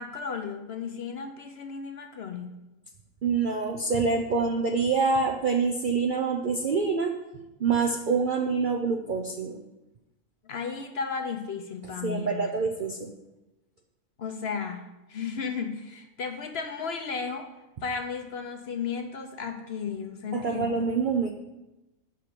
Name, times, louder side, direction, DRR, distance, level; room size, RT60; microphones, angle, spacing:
voice 1, 0.0-2.5 10.4-12.5 14.2-17.5 17.8-20.7, left 5 dB, 55° left, 5 dB, 0.8 m, -34 dB
voice 2, 3.2-7.1 7.6-9.6 12.0-13.1 20.3-21.3, right 4 dB, 60° right, 2 dB, 0.5 m, -26 dB
5.8 x 5.0 x 6.7 m, 1.0 s
omnidirectional pair, 1.5 m